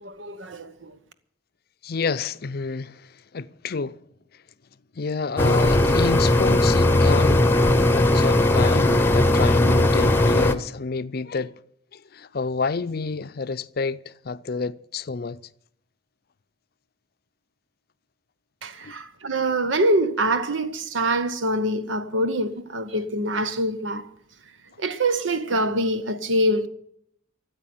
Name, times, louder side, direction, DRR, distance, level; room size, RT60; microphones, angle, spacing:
voice 1, 0.0-1.0 18.6-24.1 24.8-26.7, right 1 dB, 80° right, 1.1 m, -25 dB
voice 2, 1.8-4.0 5.0-11.5 11.9-15.4 18.8-18.9, left 4 dB, 55° left, 0.5 m, -29 dB
sound 1, 5.4-10.5, left 1 dB, 10° left, 0.9 m, -18 dB
14.0 x 8.0 x 9.4 m
head